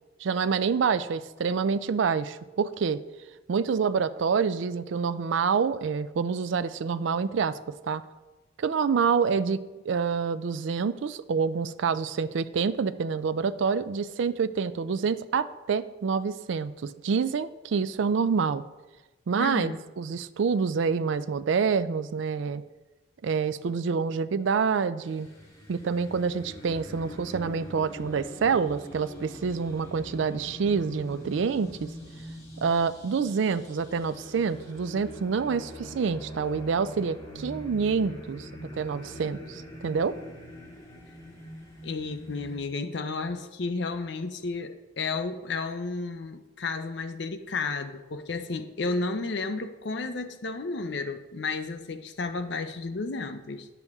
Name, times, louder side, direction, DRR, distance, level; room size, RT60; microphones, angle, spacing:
voice 1, 0.2-3.0 3.5-8.0 8.6-9.6 9.9-18.6 19.3-22.6 23.2-25.3 25.7-31.9 32.6-40.2, right 5 dB, 70° right, 14 dB, 0.4 m, -27 dB
voice 2, 19.4-19.8 41.8-53.7, left 3 dB, 60° left, 9 dB, 0.6 m, -32 dB
sound 1, 25.0-42.6, equal, 15° left, 1.9 m, -43 dB
9.6 x 6.9 x 3.5 m, 1.1 s
head